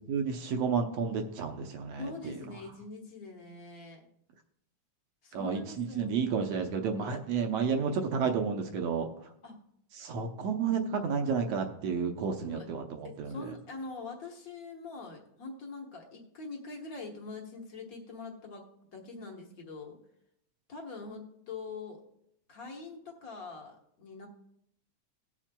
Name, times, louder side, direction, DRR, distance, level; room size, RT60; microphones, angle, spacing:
voice 1, 0.1-2.4 5.3-9.1 10.0-13.5, right 6 dB, 70° right, 5 dB, 1.6 m, -31 dB
voice 2, 2.0-4.0 5.2-6.2 9.4-9.6 12.4-12.7 13.0-18.6 18.9-20.0 20.7-22.0 22.5-24.3, left 3 dB, 50° left, 1 dB, 1.0 m, -43 dB
18.5 x 7.3 x 2.2 m, 0.76 s
omnidirectional pair, 3.5 m